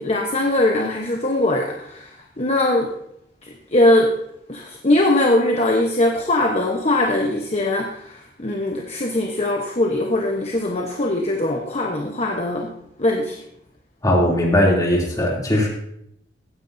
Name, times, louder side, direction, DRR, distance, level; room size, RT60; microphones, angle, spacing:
voice 1, 0.0-2.1 2.4-2.9 3.7-4.1 4.5-12.7 13.0-13.4, left 1 dB, 35° left, 1 dB, 1.1 m, -21 dB
voice 2, 14.0-15.7, left 1 dB, 20° left, -3 dB, 3.0 m, -18 dB
16.0 x 9.6 x 2.7 m, 0.74 s
head